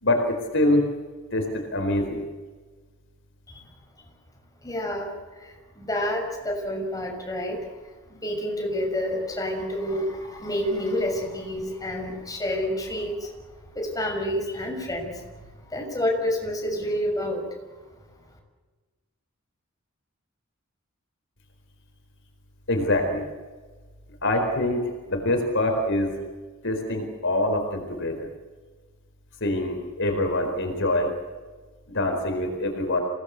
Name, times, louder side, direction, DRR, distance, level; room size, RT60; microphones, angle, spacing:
voice 1, 0.0-0.9 1.3-2.2 22.7-23.2 24.2-26.1 26.6-28.3 29.4-31.1 31.9-33.0, left 1 dB, 60° left, 4 dB, 4.5 m, -25 dB
voice 2, 4.6-7.7 8.2-13.4 13.7-17.4, left 1 dB, 15° left, 1 dB, 6.5 m, -29 dB
27.5 x 19.0 x 8.3 m, 1.4 s
head